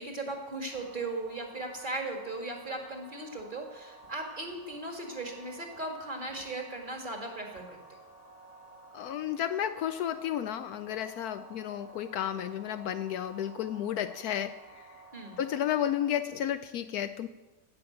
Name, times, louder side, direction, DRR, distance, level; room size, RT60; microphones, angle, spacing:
voice 1, 0.0-7.8 15.1-15.4, right 2 dB, 30° right, 2 dB, 1.9 m, -37 dB
sound 1, 0.7-16.2, right 3 dB, 35° left, 1.8 m, -53 dB
voice 2, 8.9-14.9 15.4-17.3, left 10 dB, 75° left, 10 dB, 1.0 m, -32 dB
15.0 x 6.0 x 7.8 m, 1.1 s
omnidirectional pair, 1.8 m